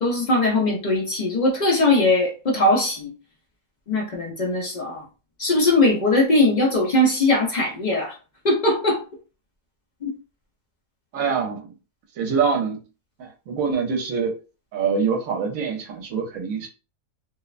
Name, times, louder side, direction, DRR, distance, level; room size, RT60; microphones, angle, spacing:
voice 1, 0.0-3.1 3.9-5.0 5.4-8.1 8.4-9.0 10.0-10.1, left 2 dB, 60° left, -2 dB, 0.4 m, -20 dB
voice 2, 11.1-11.7 12.2-12.8 13.2-14.3 14.7-16.7, right 5 dB, 70° right, 2 dB, 1.0 m, -24 dB
2.6 x 2.0 x 2.4 m, 0.33 s
omnidirectional pair, 1.5 m